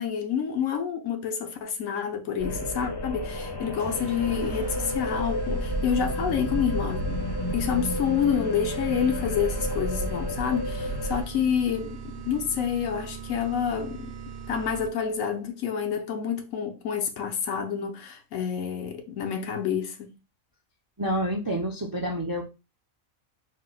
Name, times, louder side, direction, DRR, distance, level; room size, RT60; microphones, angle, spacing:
voice 1, 0.0-14.1 14.5-20.1, left 8 dB, 75° left, 1.1 m, -28 dB
sound 1, 2.4-11.2, equal, 25° left, 0.5 m, -31 dB
sound 2, 3.8-15.2, right 6 dB, 65° right, 0.7 m, -40 dB
voice 2, 21.0-22.4, equal, 30° right, 0.3 m, -28 dB
4.3 x 2.1 x 3.8 m
omnidirectional pair, 1.4 m